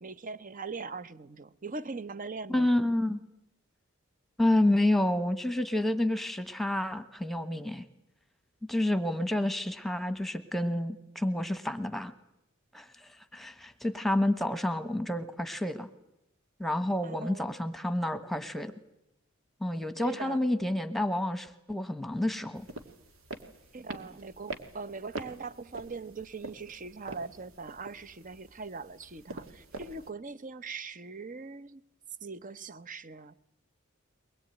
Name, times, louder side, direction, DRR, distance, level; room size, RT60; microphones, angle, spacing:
voice 1, 0.0-2.7 17.0-17.5 20.0-20.4 23.7-31.8 32.2-33.3, right 4 dB, 40° right, 0.8 m, -41 dB
voice 2, 2.5-3.2 4.4-7.8 8.7-12.1 12.7-15.9 16.6-18.7 19.6-22.7, left 1 dB, ahead, 1.2 m, -29 dB
sound 1, 22.5-30.1, right 2 dB, 85° right, 2.3 m, -45 dB
23.0 x 20.5 x 9.1 m
head